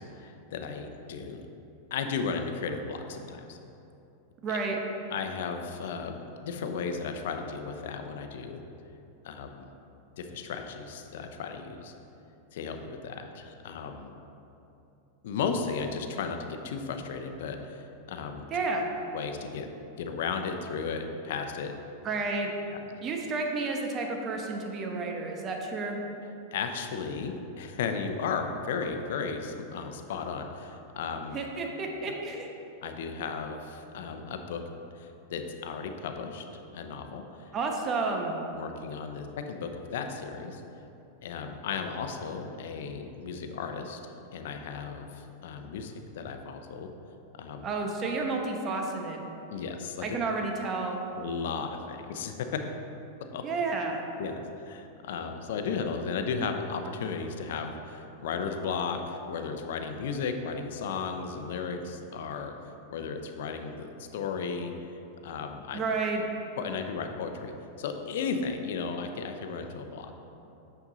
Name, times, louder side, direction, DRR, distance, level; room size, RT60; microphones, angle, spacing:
voice 1, 0.0-1.4 1.9-3.6 5.1-8.6 9.2-9.7 10.2-11.9 12.5-14.1 15.2-16.4 16.6-18.5 19.1-19.7 20.0-21.7 26.5-31.4 32.8-34.6 35.0-37.5 38.5-40.6 41.2-44.0 44.3-46.9 47.4-47.6 49.5-50.1 51.1-52.6 53.3-53.4 54.2-62.5 62.9-64.7 65.2-65.8 66.6-67.5 67.8-70.1, left 5 dB, 70° left, 6 dB, 0.7 m, -35 dB
voice 2, 4.4-4.8 18.5-18.9 22.0-22.5 23.0-26.0 31.3-32.5 37.5-38.4 47.6-49.2 50.0-51.0 53.4-54.0 65.7-66.3, right 3 dB, 30° right, 2 dB, 1.0 m, -31 dB
6.8 x 5.9 x 3.9 m, 2.8 s
hypercardioid pair, 125°, 0 cm